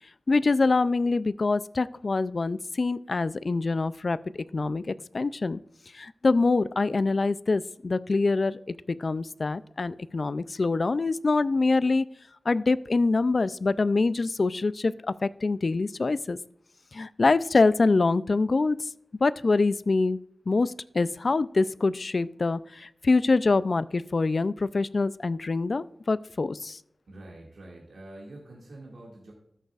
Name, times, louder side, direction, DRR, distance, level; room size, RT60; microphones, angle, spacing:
voice 1, 0.3-5.6 5.9-12.1 12.5-14.9 15.2-16.4 16.9-18.9 19.2-20.2 20.5-26.8, left 3 dB, 55° left, 17 dB, 0.3 m, -25 dB
voice 2, 27.1-29.3, right 1 dB, 85° right, -3 dB, 2.0 m, -46 dB
13.5 x 6.6 x 2.4 m, 0.74 s
wide cardioid pair, 75°, 0 cm